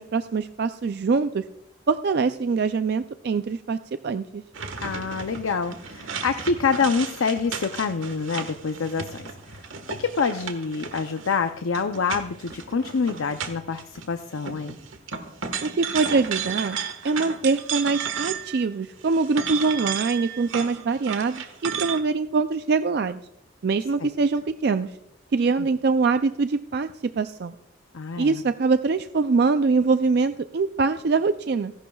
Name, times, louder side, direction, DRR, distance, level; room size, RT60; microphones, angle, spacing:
voice 1, 0.0-1.4 1.9-4.4 15.6-16.8 17.0-23.2 23.6-24.9 25.3-26.9 27.2-27.5 28.2-31.7, right 4 dB, 50° right, 10 dB, 0.4 m, -23 dB
sound 1, 4.5-14.1 14.4-18.7 19.0-22.0, right 7 dB, 80° right, 1.4 m, -34 dB
voice 2, 4.8-9.6 9.9-14.7 24.0-24.1 25.6-25.7 27.9-28.4, left 5 dB, 85° left, 7 dB, 0.6 m, -26 dB
29.5 x 11.5 x 2.3 m, 0.79 s
head